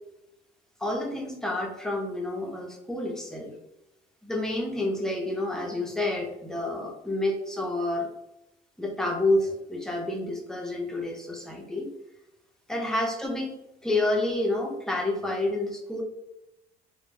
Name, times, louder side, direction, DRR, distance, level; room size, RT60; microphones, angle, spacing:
voice 1, 0.8-3.5 4.2-8.1 8.8-11.9 12.7-13.5 13.8-16.0, left 2 dB, 5° left, 0 dB, 0.5 m, -29 dB
2.1 x 2.0 x 3.1 m, 0.89 s
cardioid pair, 110°, 17 cm